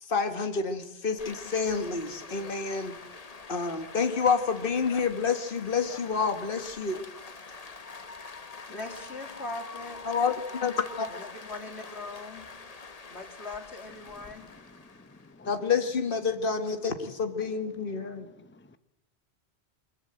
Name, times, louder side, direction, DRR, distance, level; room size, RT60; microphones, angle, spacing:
voice 1, 0.0-2.9 3.5-7.0 10.0-11.1 15.5-18.3, left 5 dB, 55° left, 1.9 m, -28 dB
sound 1, 1.2-15.5, left 4 dB, 35° left, 1.1 m, -45 dB
voice 2, 8.7-10.0 11.1-12.5 13.1-14.5, left 2 dB, 85° left, 3.4 m, -40 dB
voice 3, 14.7-15.5 18.2-18.8, left 2 dB, 10° left, 1.0 m, -54 dB
24.5 x 21.0 x 7.8 m
omnidirectional pair, 1.1 m